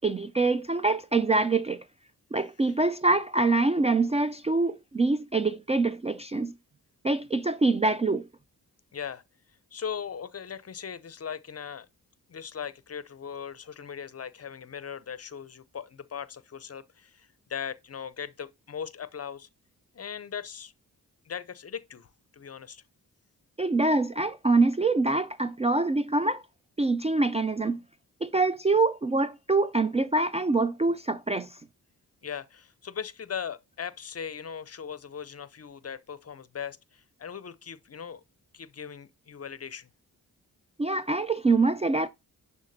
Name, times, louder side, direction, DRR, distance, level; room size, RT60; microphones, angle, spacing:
voice 1, 0.0-1.8 2.3-6.5 7.0-8.3 23.6-26.4 26.8-27.8 28.2-31.6 40.8-42.1, right 3 dB, 20° right, 0.3 m, -25 dB
voice 2, 8.9-9.2 9.7-11.9 12.3-19.5 19.9-20.7 21.2-22.8 32.2-38.2 38.5-39.9, left 7 dB, 40° left, 0.6 m, -39 dB
10.5 x 3.5 x 2.6 m
supercardioid pair, 40°, 38 cm